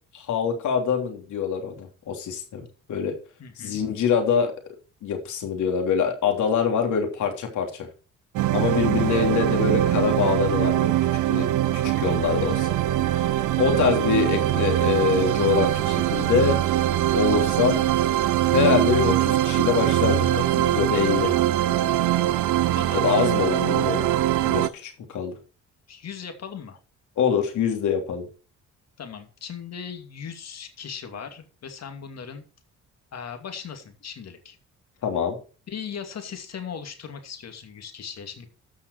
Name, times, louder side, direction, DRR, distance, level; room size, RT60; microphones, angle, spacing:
voice 1, 0.1-3.1 3.6-4.5 5.0-7.9 8.5-10.9 11.3-11.5 12.0-12.7 13.2-13.3 13.6-16.6 17.1-17.8 18.5-21.3 22.9-24.1 24.5-25.3 27.2-28.3 35.0-35.4, left 7 dB, 75° left, 4 dB, 3.2 m, -24 dB
voice 2, 3.4-3.8 8.7-9.1 13.6-13.9 22.7-23.1 25.9-26.8 29.0-32.5 33.1-34.6 35.7-38.5, left 7 dB, 60° left, 6 dB, 2.6 m, -38 dB
sound 1, 8.4-24.7, right 13 dB, 80° right, 0.7 m, -22 dB
14.0 x 5.7 x 4.8 m, 0.35 s
cardioid pair, 90°, 30 cm